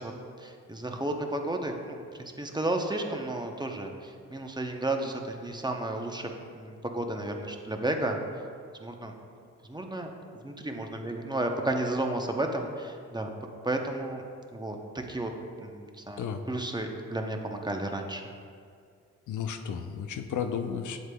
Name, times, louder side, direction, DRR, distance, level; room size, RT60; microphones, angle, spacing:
voice 1, 0.0-8.2 8.8-9.1 9.6-13.3 13.6-14.2 14.5-14.8 15.1-15.3 15.6-18.3, right 1 dB, 15° right, 3 dB, 0.7 m, -33 dB
voice 2, 19.3-21.0, left 7 dB, 75° left, 7 dB, 0.5 m, -33 dB
7.9 x 7.9 x 2.3 m, 2.2 s
cardioid pair, 70°, 30 cm